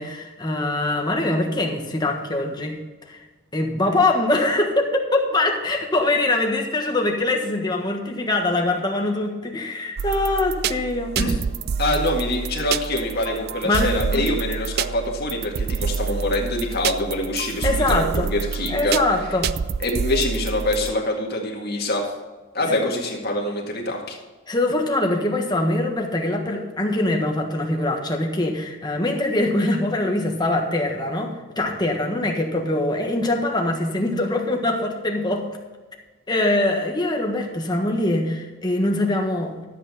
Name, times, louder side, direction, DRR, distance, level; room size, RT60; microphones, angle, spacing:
voice 1, 0.0-2.8 3.1-3.2 3.5-11.1 13.6-14.2 17.6-18.3 18.7-19.5 22.8-22.9 24.5-35.4 36.3-39.6, left 2 dB, 20° left, 1 dB, 1.5 m, -23 dB
sound 1, 10.0-20.9, right 6 dB, 50° right, 0.4 m, -27 dB
voice 2, 11.8-19.0 19.8-22.1 22.5-24.2, left 1 dB, 50° left, 0 dB, 1.9 m, -25 dB
12.5 x 8.3 x 4.2 m, 1.2 s
head